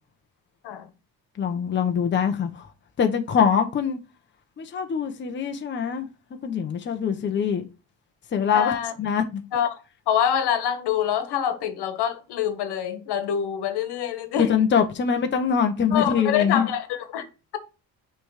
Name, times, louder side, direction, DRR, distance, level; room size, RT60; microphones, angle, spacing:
voice 1, 1.4-2.7 3.0-4.0 4.6-6.1 6.4-7.6 8.3-9.4 14.4-16.7, left 7 dB, 30° left, 0.8 m, -23 dB
voice 2, 8.5-8.9 9.5-9.8 10.1-14.5 15.9-17.2, left 9 dB, 75° left, 1.3 m, -25 dB
5.9 x 3.5 x 4.8 m
cardioid pair, 165°, 40 cm